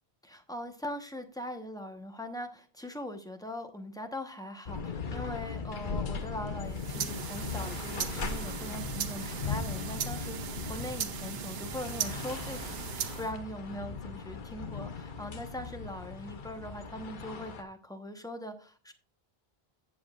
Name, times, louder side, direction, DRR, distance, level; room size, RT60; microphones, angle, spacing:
voice 1, 0.2-18.9, left 1 dB, 5° left, 6 dB, 1.0 m, -41 dB
sound 1, 4.7-17.6, left 5 dB, 55° left, 1.0 m, -38 dB
sound 2, 6.6-13.3, right 8 dB, 75° right, 1.0 m, -38 dB
15.0 x 7.2 x 2.4 m, 0.36 s
omnidirectional pair, 1.0 m